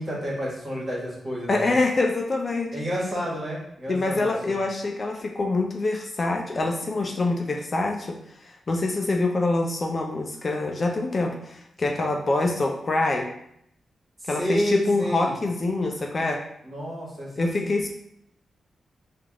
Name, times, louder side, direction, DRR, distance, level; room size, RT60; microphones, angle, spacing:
voice 1, 0.0-1.7 2.7-4.5 14.2-15.4 16.6-17.7, equal, 35° right, -6 dB, 1.5 m, -30 dB
voice 2, 1.5-2.7 3.9-13.3 14.3-16.4 17.4-17.9, left 2 dB, 35° left, 2 dB, 0.3 m, -25 dB
3.3 x 2.4 x 3.6 m, 0.74 s
wide cardioid pair, 120°, 0 cm